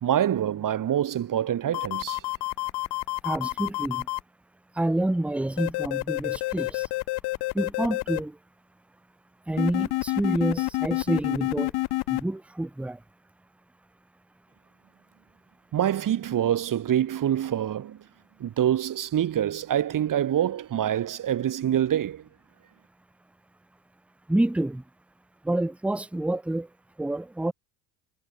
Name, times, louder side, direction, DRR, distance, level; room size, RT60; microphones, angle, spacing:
voice 1, 0.0-2.2 15.7-18.0 18.4-22.2, right 10 dB, 45° right, 2.1 m, -25 dB
sound 1, 1.7-4.2 5.6-8.2 9.6-12.2, left 20 dB, 65° left, 0.9 m, -28 dB
voice 2, 3.2-4.1 4.8-6.9 7.5-8.4 9.5-11.7 12.1-13.0 24.3-24.8 25.4-26.7 27.0-27.5, right 1 dB, 5° right, 0.8 m, -28 dB
supercardioid pair, 85°, 43 cm